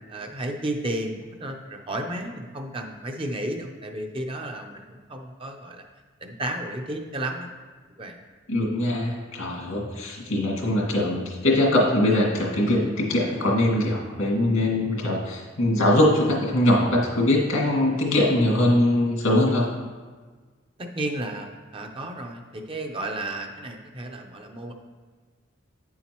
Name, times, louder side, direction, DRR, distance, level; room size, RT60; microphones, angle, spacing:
voice 1, 0.1-5.8 6.2-7.5 8.0-8.2 19.7-19.9 20.8-24.7, right 1 dB, 25° right, 3 dB, 0.6 m, -33 dB
voice 2, 8.5-19.7, left 1 dB, 85° left, -3 dB, 2.1 m, -22 dB
9.2 x 7.2 x 3.0 m, 1.4 s
head